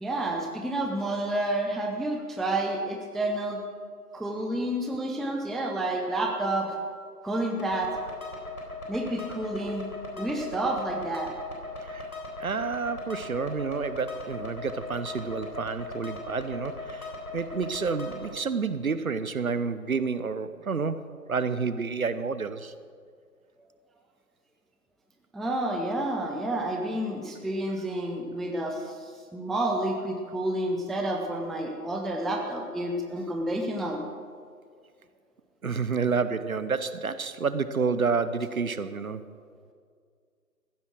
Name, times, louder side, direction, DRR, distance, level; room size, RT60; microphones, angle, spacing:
voice 1, 0.0-3.6 4.1-6.7 7.2-7.9 8.9-9.9 10.2-11.3 25.3-28.9 29.3-34.0, right 1 dB, ahead, 2 dB, 0.5 m, -29 dB
sound 1, 7.6-18.3, left 2 dB, 65° left, 4.0 m, -39 dB
voice 2, 12.4-22.7 35.6-39.2, right 5 dB, 60° right, 13 dB, 0.8 m, -29 dB
15.0 x 9.5 x 6.3 m, 2.1 s
figure-of-eight pair, 165°, 47 cm